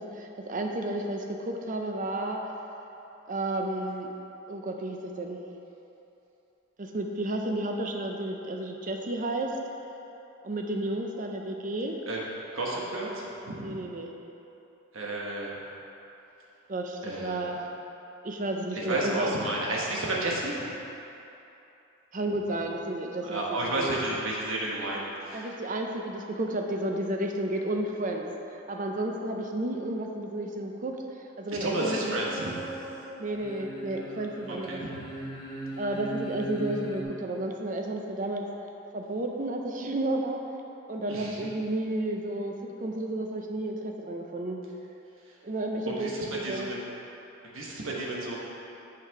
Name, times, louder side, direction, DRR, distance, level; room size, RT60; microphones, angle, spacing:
voice 1, 0.0-2.4 3.3-4.1 4.5-5.4 6.8-9.6 10.4-12.0 13.6-14.1 16.7-17.7 18.2-19.3 22.1-24.0 25.3-28.3 28.7-31.0 31.4-32.2 33.2-34.8 35.8-38.5 38.9-40.4 40.9-44.6 45.4-46.7, right 1 dB, 40° right, 2 dB, 0.6 m, -32 dB
voice 2, 12.5-13.7 14.9-15.5 17.0-17.5 18.7-20.6 23.2-25.5 31.5-32.5 34.5-34.8 41.1-41.5 45.9-46.8 47.5-48.4, right 2 dB, 80° right, -3 dB, 1.3 m, -32 dB
sound 1, 31.6-33.0 33.3-37.0, right 1 dB, 20° left, 0.9 m, -39 dB
5.8 x 5.8 x 4.8 m, 3.0 s
head